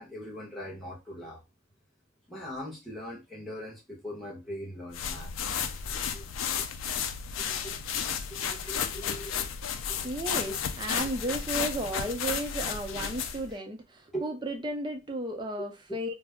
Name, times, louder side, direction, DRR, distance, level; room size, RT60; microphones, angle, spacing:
voice 1, 0.0-1.4 2.3-5.3 6.1-6.2 6.6-6.7 7.4-7.8 8.3-9.5 9.9-10.0 13.5-13.6 14.1-14.3 15.6-15.7, equal, ahead, 0.8 m, -41 dB
sound 1, 4.9-13.5, left 7 dB, 80° left, 0.4 m, -33 dB
voice 2, 10.0-16.1, right 1 dB, 20° right, 0.5 m, -34 dB
2.3 x 2.0 x 3.4 m
head